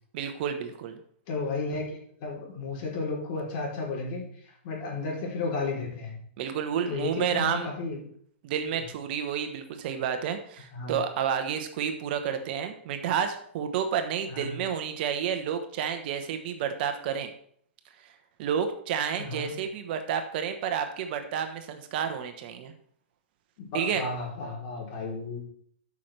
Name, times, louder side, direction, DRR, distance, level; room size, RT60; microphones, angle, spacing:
voice 1, 0.1-1.0 6.4-7.7 8.4-17.3 18.4-22.7 23.7-24.0, right 8 dB, 50° right, 7 dB, 1.1 m, -30 dB
voice 2, 1.3-1.8 2.2-4.2 4.6-6.2 6.9-8.0 10.7-11.0 14.3-14.6 19.1-19.5 23.6-25.4, left 3 dB, 45° left, -2 dB, 3.5 m, -33 dB
12.5 x 6.0 x 3.3 m, 0.63 s
hypercardioid pair, 145°, 7 cm